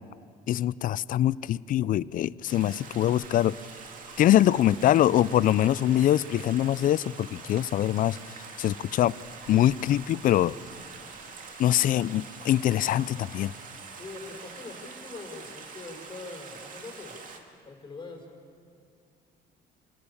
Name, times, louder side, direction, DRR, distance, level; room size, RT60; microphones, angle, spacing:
voice 1, 0.5-3.5 4.2-8.2 8.6-9.1 9.5-10.6 11.6-13.5, left 12 dB, 55° left, 21 dB, 0.5 m, -23 dB
Stream, 2.5-17.4, right 5 dB, 50° right, 2.6 m, -45 dB
voice 2, 14.0-17.1 17.7-18.3, left 3 dB, 30° left, 1 dB, 5.5 m, -42 dB
27.0 x 17.5 x 7.2 m, 2.3 s
cardioid pair, 110°, 17 cm